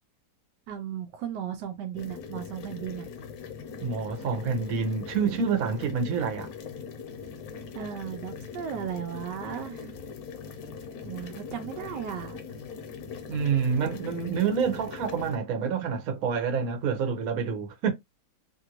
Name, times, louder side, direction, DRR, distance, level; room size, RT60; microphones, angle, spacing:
voice 1, 0.7-3.1 7.7-9.9 11.0-12.4, right 9 dB, 80° right, 1.2 m, -36 dB
sound 1, 1.9-15.4, left 6 dB, 65° left, 1.0 m, -41 dB
voice 2, 3.8-6.5 13.3-17.9, right 6 dB, 60° right, 1.2 m, -27 dB
3.0 x 2.6 x 2.8 m
omnidirectional pair, 1.9 m